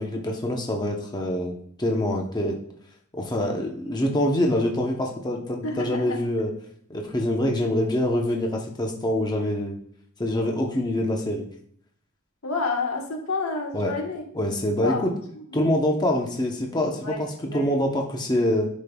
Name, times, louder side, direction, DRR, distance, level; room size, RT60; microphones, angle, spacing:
voice 1, 0.0-2.6 3.1-6.5 6.9-9.7 10.2-11.5 13.7-13.9 14.3-15.1 15.5-18.7, left 1 dB, 20° left, 1 dB, 0.8 m, -25 dB
voice 2, 5.6-6.2 12.4-14.2 14.8-15.0 15.3-15.4 17.0-17.7, left 3 dB, 80° left, 1 dB, 1.4 m, -29 dB
10.5 x 5.2 x 2.3 m, 0.63 s
head